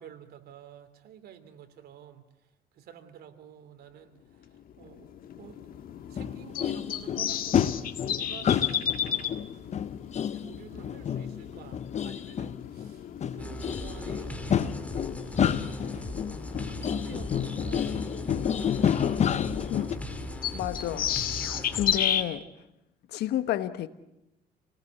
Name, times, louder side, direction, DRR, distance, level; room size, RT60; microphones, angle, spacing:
voice 1, 0.0-5.1 5.4-5.6 6.1-9.5 10.3-14.8 15.4-16.1 16.6-17.9 18.5-20.3 21.3-21.6, right 8 dB, 70° right, 3.0 m, -50 dB
sound 1, 4.5-22.2, left 10 dB, 60° left, 1.8 m, -35 dB
sound 2, 6.2-12.9 13.2-20.0, left 8 dB, 40° left, 1.0 m, -29 dB
sound 3, 13.4-22.0, equal, 10° left, 2.5 m, -39 dB
voice 2, 20.5-21.1 21.4-22.5 23.1-23.9, left 12 dB, 75° left, 1.4 m, -31 dB
29.0 x 19.0 x 8.3 m
cardioid pair, 110°, 17 cm